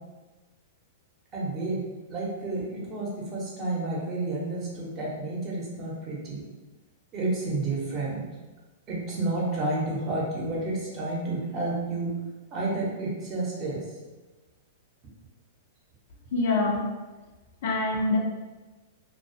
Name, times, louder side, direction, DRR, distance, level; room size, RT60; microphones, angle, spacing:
voice 1, 1.3-1.8 2.1-6.5 7.1-8.2 8.9-12.1 12.5-13.9, right 2 dB, 35° right, -4 dB, 0.8 m, -30 dB
voice 2, 16.3-16.9 17.6-18.2, left 3 dB, 60° left, -1 dB, 0.5 m, -25 dB
2.3 x 2.3 x 2.6 m, 1.2 s
hypercardioid pair, 130°, 0 cm